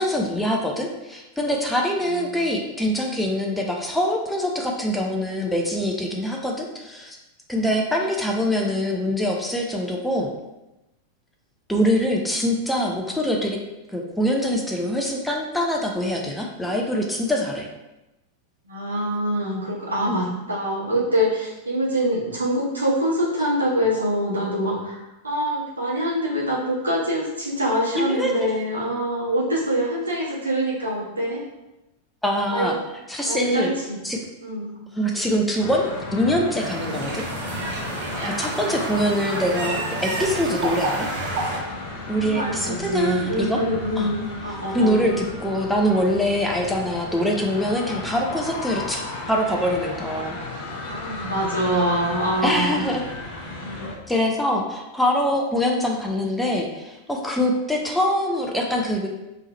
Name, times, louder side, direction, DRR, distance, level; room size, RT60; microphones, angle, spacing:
voice 1, 0.0-7.2 7.5-10.3 11.7-13.6 13.9-17.7 20.1-20.2 28.0-28.5 32.2-32.8 33.1-33.7 34.0-34.2 34.9-37.2 37.7-37.8 38.2-41.1 42.1-43.6 44.0-44.1 44.7-49.0 49.3-50.4 52.4-53.0 54.1-59.1, equal, 5° left, 0 dB, 0.6 m, -24 dB
voice 2, 18.7-25.0 25.2-31.4 32.5-32.7 33.2-34.0 34.4-34.7 42.2-45.2 50.9-52.8 53.6-53.9, equal, 75° right, -5 dB, 1.3 m, -25 dB
sound 1, 35.6-53.9, left 2 dB, 50° left, 1.1 m, -34 dB
sound 2, 36.6-41.6, right 2 dB, 55° right, 0.7 m, -29 dB
3.5 x 3.2 x 4.3 m, 0.97 s
figure-of-eight pair, 90°, 0 cm